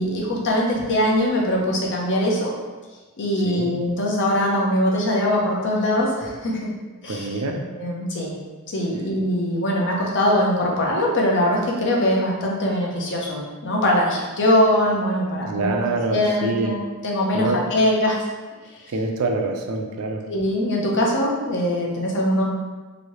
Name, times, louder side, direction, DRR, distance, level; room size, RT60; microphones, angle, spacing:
voice 1, 0.0-2.5 3.2-6.7 7.0-7.4 7.7-8.4 8.7-15.7 16.1-18.2 20.3-22.4, left 1 dB, 55° left, -2 dB, 0.6 m, -22 dB
voice 2, 7.1-7.6 15.4-16.7 17.3-17.6 18.9-20.2, right 3 dB, 70° right, 3 dB, 0.4 m, -25 dB
3.0 x 2.7 x 3.0 m, 1.3 s
head